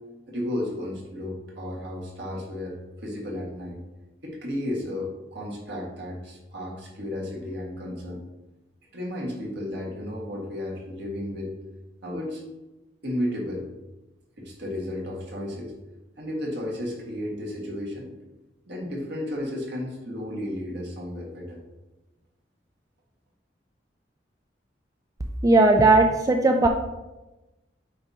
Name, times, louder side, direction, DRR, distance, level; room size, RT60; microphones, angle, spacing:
voice 1, 0.3-3.8 4.2-8.2 8.9-11.5 12.0-12.4 13.0-13.7 14.4-15.7 16.2-18.1 18.7-21.6, left 1 dB, 65° right, -3 dB, 1.8 m, -33 dB
voice 2, 25.4-26.7, right 2 dB, 20° right, 3 dB, 0.3 m, -17 dB
8.4 x 2.8 x 4.8 m, 1.0 s
head